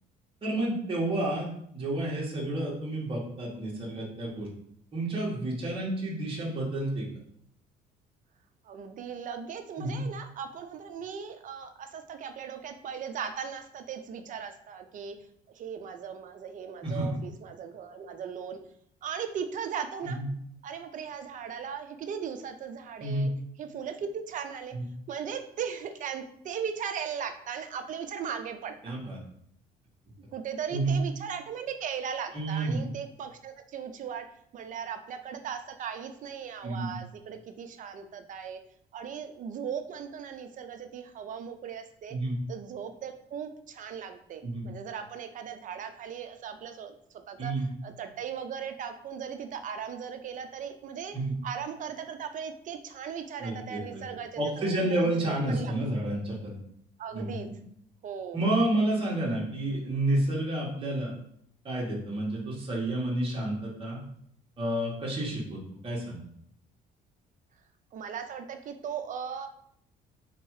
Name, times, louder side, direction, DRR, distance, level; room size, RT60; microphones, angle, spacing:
voice 1, 0.4-1.5 1.7-4.5 4.9-7.0 9.8-10.0 16.8-17.1 20.0-20.3 23.0-23.3 24.7-24.8 28.8-29.2 30.7-31.0 32.3-32.8 36.6-36.9 42.1-42.3 44.4-44.7 47.4-47.6 51.1-51.3 53.4-54.0 54.4-56.6 57.1-57.4 58.3-61.1 61.6-64.0 64.6-66.2, right 1 dB, 30° right, -4 dB, 1.4 m, -30 dB
voice 2, 8.6-15.2 15.5-18.6 19.0-20.2 20.6-23.3 23.6-24.7 25.1-28.9 30.3-34.3 34.5-38.6 38.9-42.2 42.5-47.5 47.8-51.2 51.4-55.7 57.0-57.5 58.0-58.4 67.9-69.5, right 7 dB, 50° right, 8 dB, 0.6 m, -38 dB
3.6 x 3.0 x 4.7 m, 0.68 s
cardioid pair, 110°, 17 cm